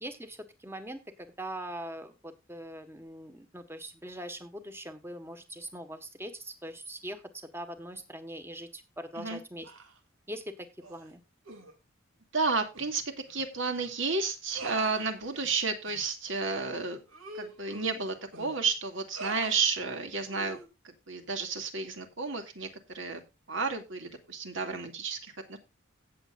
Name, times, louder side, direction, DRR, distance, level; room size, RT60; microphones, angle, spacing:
voice 1, 0.0-7.2 7.5-9.7 10.3-11.2, right 1 dB, 10° right, 9 dB, 1.4 m, -42 dB
sound 1, 9.6-10.0 10.8-11.1 11.4-11.7 12.7-12.9 13.3-13.4 13.8-13.9 14.5-15.5 15.9-16.0 16.5-16.6 17.1-18.5 19.1-19.6 20.3-20.7, right 2 dB, 80° right, 2.9 m, -43 dB
voice 2, 12.3-13.0 13.3-17.0 17.4-20.6 20.8-22.7 22.9-23.2 23.5-25.6, right 4 dB, 65° right, 6 dB, 2.4 m, -32 dB
17.0 x 7.4 x 2.5 m, 0.25 s
head